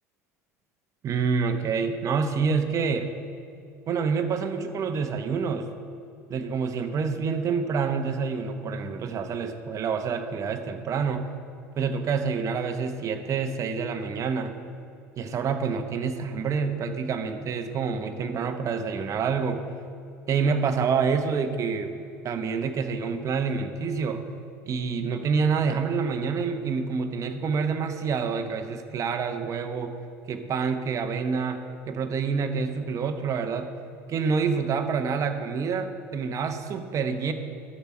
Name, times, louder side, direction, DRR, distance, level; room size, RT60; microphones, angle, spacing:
voice 1, 1.0-3.1 3.9-5.7 6.3-11.2 11.7-14.5 15.2-19.6 20.3-22.0 22.2-24.2 24.7-29.9 30.3-33.7 34.1-37.3, right 5 dB, 40° right, 6 dB, 0.9 m, -27 dB
12.0 x 6.9 x 4.3 m, 2.5 s
hypercardioid pair, 75°, 8 cm